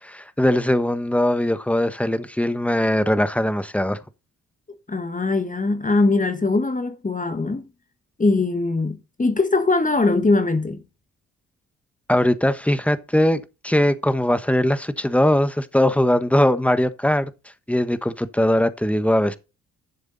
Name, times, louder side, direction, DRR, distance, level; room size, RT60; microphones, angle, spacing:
voice 1, 0.0-4.0 12.1-17.3 17.7-19.4, left 1 dB, 5° left, 1.2 m, -20 dB
voice 2, 4.9-7.6 8.2-10.8, left 3 dB, 25° left, 1.5 m, -21 dB
11.5 x 7.1 x 4.1 m
supercardioid pair, 60°, 32 cm